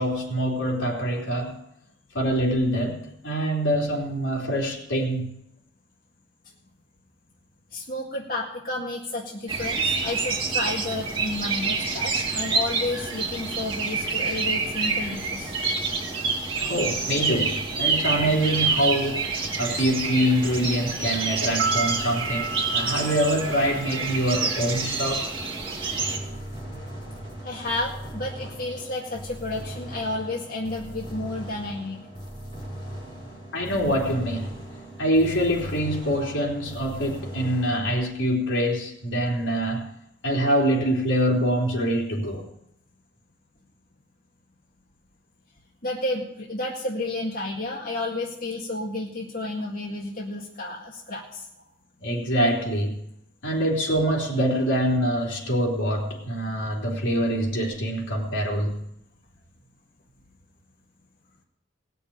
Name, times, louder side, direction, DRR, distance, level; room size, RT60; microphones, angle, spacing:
voice 1, 0.0-1.6 2.1-5.4 16.6-19.3 19.6-25.3 33.5-34.6 35.0-39.9 40.2-42.4 52.0-53.0 53.4-58.8, equal, 70° left, -2 dB, 3.6 m, -25 dB
voice 2, 7.7-15.6 27.4-32.1 45.8-51.5, left 2 dB, 45° left, -4 dB, 2.0 m, -31 dB
sound 1, 9.5-26.2, right 4 dB, 25° right, 2.7 m, -27 dB
sound 2, 21.6-25.6 25.9-26.0, right 4 dB, 60° right, 0.8 m, -34 dB
sound 3, 26.0-37.8, equal, 25° left, 4.8 m, -38 dB
18.5 x 6.9 x 8.8 m, 0.79 s
head